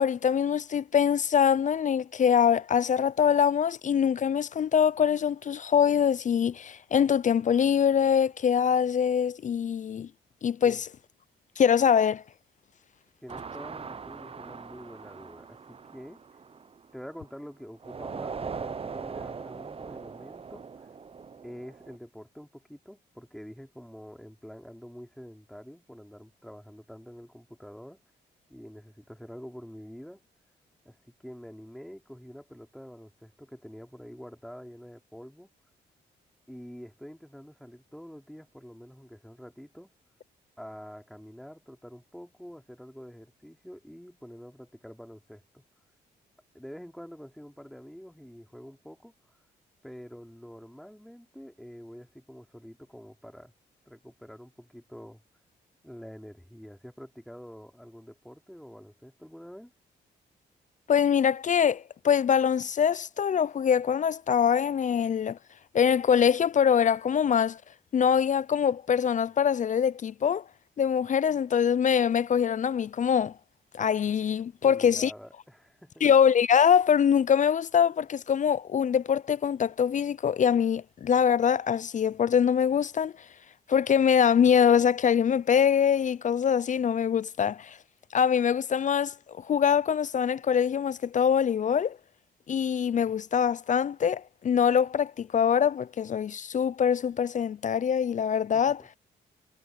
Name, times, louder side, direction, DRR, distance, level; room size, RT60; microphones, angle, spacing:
voice 1, 0.0-10.1 10.4-10.9 11.6-12.2 60.9-65.4 65.7-67.6 67.9-70.4 70.8-73.3 73.7-75.1 76.0-83.1 83.7-87.8 88.1-92.0 92.5-98.8, left 8 dB, 45° left, 0.4 m, -24 dB
voice 2, 13.2-16.2 16.9-20.9 21.4-28.0 28.5-30.2 30.8-35.5 36.5-39.9 40.6-45.6 46.5-49.1 49.8-53.5 53.8-55.2 55.8-59.7 74.6-76.1 98.5-98.9, equal, ahead, 3.2 m, -46 dB
sound 1, 13.3-17.3 17.8-22.0, right 5 dB, 30° right, 0.6 m, -40 dB
cardioid pair, 70°, 19 cm